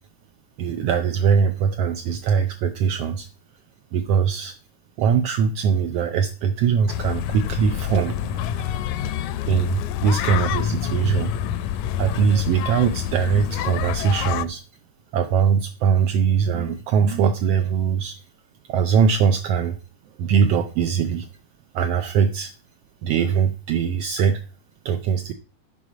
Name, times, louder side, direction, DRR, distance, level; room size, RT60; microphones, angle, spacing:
voice 1, 0.6-3.3 3.9-4.5 5.0-8.4 9.5-11.3 12.0-14.6 15.1-18.2 18.7-19.8 20.2-21.3 21.7-22.5 23.0-24.4 24.8-25.3, right 7 dB, 80° right, 7 dB, 1.4 m, -21 dB
sound 1, 6.9-14.5, left 10 dB, 80° left, 1.9 m, -27 dB
9.8 x 5.5 x 4.9 m, 0.36 s
omnidirectional pair, 3.4 m